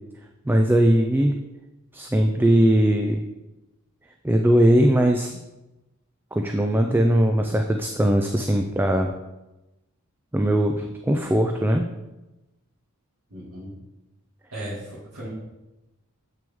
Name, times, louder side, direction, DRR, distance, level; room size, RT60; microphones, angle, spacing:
voice 1, 0.5-1.4 1.9-3.2 4.2-5.3 6.3-9.1 10.3-11.9, right 1 dB, 10° right, 4 dB, 0.3 m, -20 dB
voice 2, 13.3-13.7 14.5-15.3, right 1 dB, 65° right, -10 dB, 2.2 m, -36 dB
7.7 x 6.0 x 3.6 m, 1.0 s
head